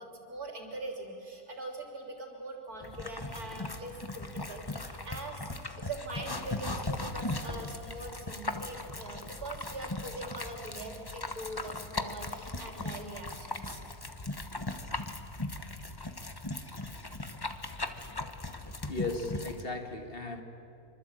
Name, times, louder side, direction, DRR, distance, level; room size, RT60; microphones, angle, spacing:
voice 1, 0.0-5.5 5.8-13.8, right 2 dB, 70° right, 2 dB, 4.0 m, -42 dB
sound 1, 2.8-19.6, left 2 dB, 15° left, 1.0 m, -38 dB
voice 2, 18.9-20.4, left 3 dB, 35° left, 5 dB, 1.9 m, -36 dB
25.5 x 25.0 x 9.0 m, 2.7 s
omnidirectional pair, 1.6 m